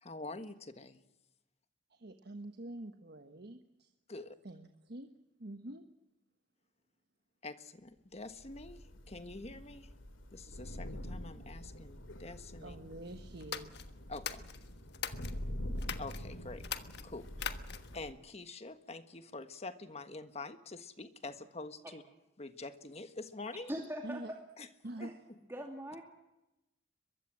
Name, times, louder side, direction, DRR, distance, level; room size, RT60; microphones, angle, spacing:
voice 1, 0.0-1.0 4.1-4.4 7.4-9.9 10.3-12.8 14.1-14.5 16.0-16.7 17.0-17.5 17.9-22.0 22.4-23.7 24.6-24.7 25.0-25.1, left 3 dB, 35° left, 10 dB, 1.5 m, -46 dB
voice 2, 1.9-3.9 4.4-5.1 5.4-5.9 12.6-13.7 24.0-24.3 24.8-25.1, right 1 dB, 55° right, 7 dB, 1.3 m, -46 dB
Thunder / Rain, 8.4-18.1, equal, 85° left, 2.5 m, -45 dB
sound 1, 13.4-15.4 15.8-16.2 16.6-18.0, left 8 dB, 55° left, 1.4 m, -41 dB
voice 3, 23.7-24.4 25.0-25.1 25.5-26.0, equal, 15° right, 1 dB, 2.6 m, -41 dB
23.0 x 22.5 x 7.6 m, 0.93 s
head